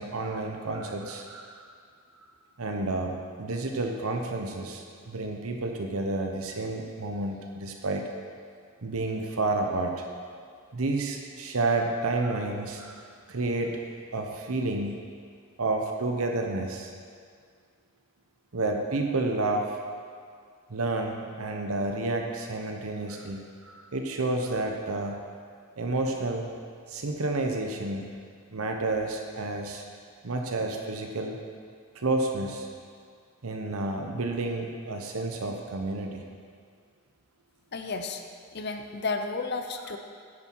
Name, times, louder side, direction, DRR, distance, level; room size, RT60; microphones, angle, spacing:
voice 1, 0.0-1.7 2.6-8.0 8.8-9.9 10.7-12.9 13.3-13.8 14.1-14.9 15.6-16.9 18.5-19.8 20.7-25.2 25.8-26.5 26.9-28.1 28.5-29.8 30.2-31.4 31.9-32.7 33.4-36.2, right 2 dB, 75° right, 3 dB, 0.9 m, -30 dB
voice 2, 37.7-38.2 38.5-40.0, left 3 dB, 50° left, 6 dB, 0.6 m, -32 dB
9.7 x 9.7 x 4.6 m, 2.1 s
head